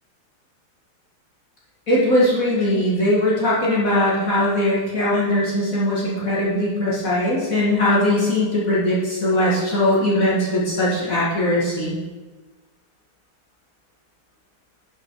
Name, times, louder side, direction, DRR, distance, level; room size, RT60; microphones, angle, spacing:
voice 1, 1.9-12.0, left 1 dB, 45° left, -6 dB, 2.1 m, -20 dB
10.5 x 5.8 x 4.6 m, 1.3 s
omnidirectional pair, 2.2 m